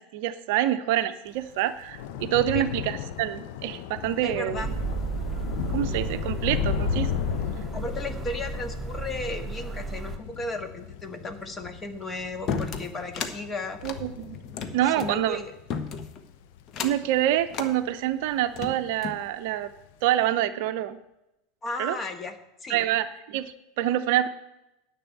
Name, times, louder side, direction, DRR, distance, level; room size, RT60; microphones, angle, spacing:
voice 1, 0.0-4.6 5.7-7.2 13.8-14.4 14.7-15.4 16.8-19.7 20.0-21.0 21.8-22.0 22.7-24.3, right 12 dB, 60° right, 11 dB, 0.6 m, -26 dB
Thunder / Rain, 1.4-17.9 18.3-18.7 19.0-19.2, left 9 dB, 60° left, 0.7 m, -35 dB
voice 2, 4.2-4.7 7.7-13.8 14.8-15.5 21.6-22.4 22.6-22.8, left 2 dB, 25° left, 6 dB, 1.6 m, -35 dB
sound 1, 4.6-10.2, right 5 dB, 20° right, 1.0 m, -34 dB
sound 2, 12.5-13.4 13.8-15.2 15.7-16.2 16.7-17.1 17.5-17.7 18.3-19.2, left 6 dB, 40° left, 1.1 m, -33 dB
10.0 x 6.1 x 8.1 m, 0.92 s
figure-of-eight pair, 80°, 0 cm